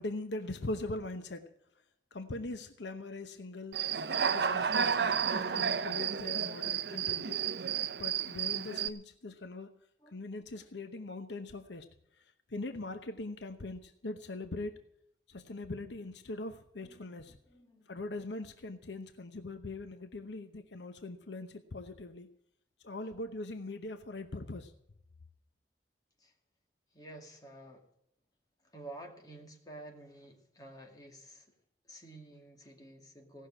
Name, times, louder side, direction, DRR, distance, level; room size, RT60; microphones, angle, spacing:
voice 1, 0.0-1.5 2.1-3.9 4.3-7.4 8.0-9.7 10.1-11.9 12.2-14.8 15.3-17.4 17.9-22.3 22.8-24.7, left 2 dB, 80° left, 0.9 m, -41 dB
Human voice / Cricket, 3.7-8.9, right 7 dB, 65° right, 0.6 m, -31 dB
voice 2, 16.8-17.9 23.0-23.2 26.2-26.3 26.9-27.9 28.6-31.5 31.8-33.5, right 1 dB, 20° left, 2.2 m, -51 dB
17.0 x 6.6 x 8.7 m
head